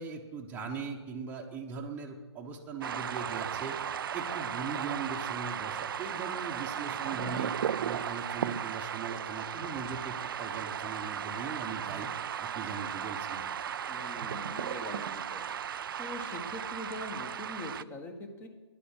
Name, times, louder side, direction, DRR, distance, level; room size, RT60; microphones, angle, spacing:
voice 1, 0.0-3.8 4.1-7.6 7.8-12.1 12.4-13.5, right 5 dB, 10° right, -1 dB, 1.0 m, -40 dB
sound 1, 2.8-17.8, right 8 dB, 50° right, 0.4 m, -36 dB
voice 2, 13.9-18.5, left 1 dB, 15° left, 6 dB, 1.3 m, -43 dB
10.0 x 9.9 x 8.2 m, 1.3 s
figure-of-eight pair, 135°, 15 cm